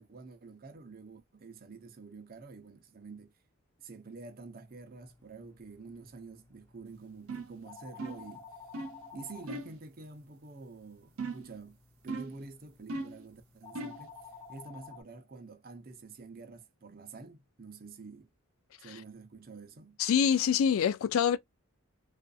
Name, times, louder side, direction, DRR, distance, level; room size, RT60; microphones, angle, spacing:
voice 1, 0.0-3.3 3.8-8.5 9.1-11.8 12.0-18.3 18.8-20.0, right 3 dB, 45° right, 0.6 m, -48 dB
sound 1, 4.7-15.0, left 5 dB, 10° left, 0.6 m, -54 dB
sound 2, 7.3-7.6 8.0-8.3 8.7-9.0 9.5-9.8 11.2-11.6 12.1-12.4 12.9-13.2 13.7-14.1, right 3 dB, 85° right, 0.6 m, -38 dB
voice 2, 20.0-21.4, left 8 dB, 75° left, 0.3 m, -25 dB
2.5 x 2.4 x 2.3 m
head